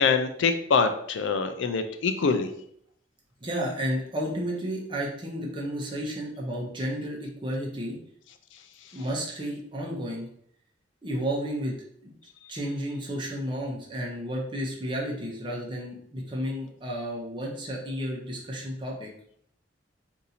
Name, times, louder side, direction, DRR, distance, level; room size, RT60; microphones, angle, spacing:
voice 1, 0.0-2.5, left 5 dB, 70° left, 8 dB, 0.4 m, -24 dB
voice 2, 3.4-8.0 8.9-10.3 11.0-12.1 12.5-19.1, equal, 25° right, -2 dB, 0.8 m, -32 dB
2.7 x 2.6 x 4.1 m, 0.66 s
head